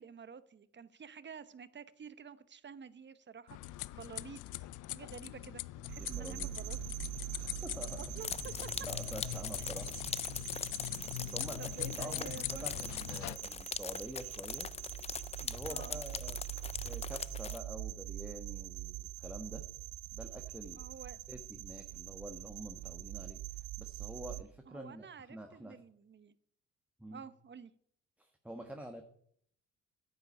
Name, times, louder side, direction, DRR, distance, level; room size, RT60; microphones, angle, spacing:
voice 1, 0.0-6.8 8.0-8.7 11.6-12.7 15.6-16.0 20.8-21.2 24.7-26.3 27.1-27.7, right 6 dB, 35° right, 14 dB, 1.0 m, -50 dB
sound 1, 3.5-13.4, left 17 dB, 80° left, 0.5 m, -42 dB
sound 2, 5.9-24.4, right 16 dB, 75° right, 0.7 m, -44 dB
voice 2, 6.0-6.5 7.4-8.1 8.8-10.0 11.2-14.7 15.4-16.4 16.8-19.6 20.1-20.8 21.3-25.8 27.0-27.2 28.2-29.0, right 1 dB, 5° right, 4 dB, 1.4 m, -47 dB
sound 3, 8.2-17.6, left 6 dB, 20° left, 0.4 m, -42 dB
9.9 x 8.0 x 8.7 m, 0.65 s
cardioid pair, 90°, 30 cm